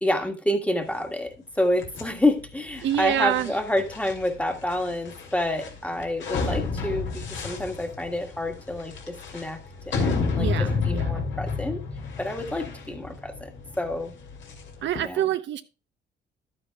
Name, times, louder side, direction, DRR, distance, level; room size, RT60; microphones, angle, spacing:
voice 1, 0.0-9.6 9.9-11.8 12.2-13.5 13.8-14.1 15.0-15.3, left 1 dB, 5° left, 1.5 m, -28 dB
sound 1, 1.8-15.0, left 4 dB, 70° left, 2.4 m, -31 dB
voice 2, 2.8-3.5 10.4-11.1 14.8-15.6, right 11 dB, 70° right, 0.7 m, -26 dB
11.5 x 9.8 x 2.3 m
cardioid pair, 90°, 20 cm